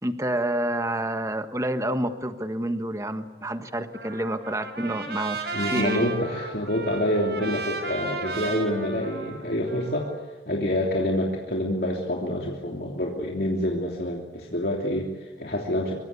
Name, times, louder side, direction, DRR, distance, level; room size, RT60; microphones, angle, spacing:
voice 1, 0.0-6.1, right 1 dB, 20° right, 8 dB, 1.5 m, -28 dB
Trumpet, 3.9-10.2, right 3 dB, 70° right, 5.4 m, -34 dB
voice 2, 5.5-10.1 10.5-15.9, left 1 dB, 60° left, -1 dB, 3.1 m, -27 dB
25.0 x 24.0 x 8.4 m, 1.3 s
head